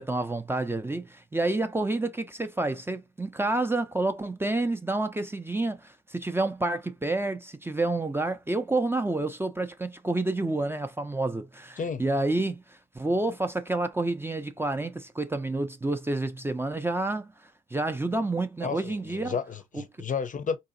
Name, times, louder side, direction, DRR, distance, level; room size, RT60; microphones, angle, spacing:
voice 1, 0.0-17.3 17.7-19.4, right 2 dB, 10° right, 0.5 m, -29 dB
voice 2, 18.6-20.6, left 6 dB, 40° left, 0.6 m, -32 dB
3.8 x 2.7 x 2.5 m
cardioid pair, 90°, 20 cm